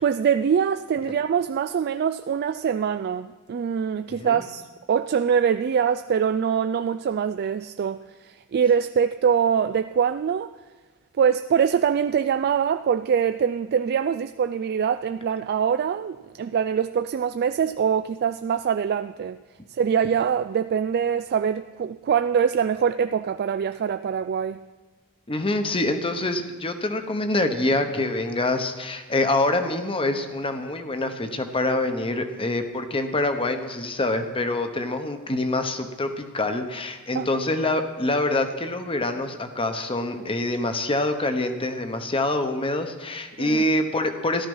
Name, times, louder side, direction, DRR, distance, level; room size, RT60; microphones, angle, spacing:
voice 1, 0.0-4.6 4.9-10.5 11.2-19.4 19.7-24.6 37.1-37.3 43.4-43.6, right 7 dB, 45° right, 10 dB, 0.3 m, -24 dB
voice 2, 4.1-4.4 25.3-44.5, left 2 dB, 25° left, 7 dB, 1.0 m, -25 dB
14.0 x 12.0 x 5.5 m, 1.4 s
head